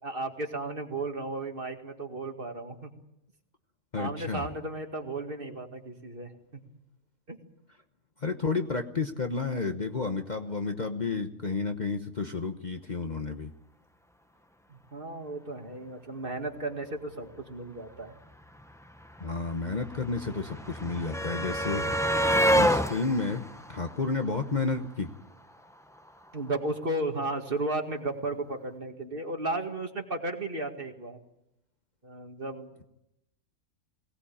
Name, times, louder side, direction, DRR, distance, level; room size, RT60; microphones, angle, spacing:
voice 1, 0.0-2.9 4.0-6.3 7.3-7.4 14.7-18.1 26.3-31.2 32.0-32.7, right 2 dB, 40° right, 4 dB, 2.2 m, -34 dB
voice 2, 3.9-4.5 8.2-13.5 19.2-22.3 22.5-25.1, left 4 dB, 35° left, 5 dB, 1.1 m, -31 dB
sound 1, 18.3-18.4 18.6-24.8 26.0-26.1 26.4-26.5, equal, 5° left, 0.7 m, -28 dB
22.0 x 18.5 x 8.7 m, 0.84 s
omnidirectional pair, 1.5 m